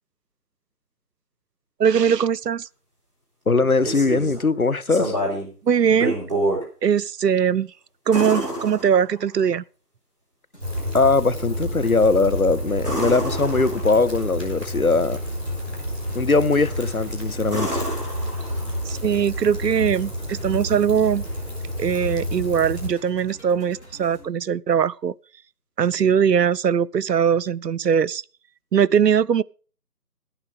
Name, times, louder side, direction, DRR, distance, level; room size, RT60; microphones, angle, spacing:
voice 1, 1.8-2.7 5.6-6.2 6.8-7.7 8.1-9.6 18.9-21.2 21.8-25.1 25.8-28.2 28.7-29.4, right 7 dB, 85° right, 0.5 m, -21 dB
voice 2, 3.5-5.2 10.9-15.2 16.1-17.8, left 3 dB, 60° left, 0.7 m, -20 dB
sound 1, 3.6-4.4 4.9-5.5 5.9-6.6 8.1-9.4 12.8-14.1 16.6-17.0 17.5-18.9 21.0-21.1, right 1 dB, 25° right, 4.8 m, -28 dB
sound 2, 10.5-24.2, equal, 45° left, 3.6 m, -46 dB
Rain, 10.6-22.9, equal, 40° right, 4.7 m, -30 dB
12.5 x 10.0 x 5.2 m
figure-of-eight pair, 180°, 48 cm